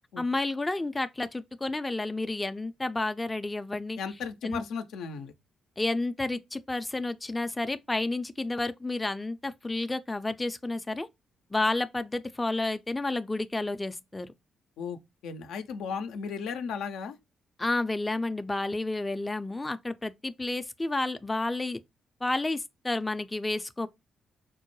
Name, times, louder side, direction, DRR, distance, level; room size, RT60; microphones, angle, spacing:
voice 1, 0.2-4.0 4.4-4.6 5.8-11.1 11.5-14.3 17.6-21.8 22.2-23.9, left 2 dB, 20° left, 0.4 m, -30 dB
voice 2, 4.0-5.3 14.8-17.2, left 6 dB, 80° left, 0.4 m, -35 dB
4.5 x 2.1 x 3.0 m
supercardioid pair, 55°, 0 cm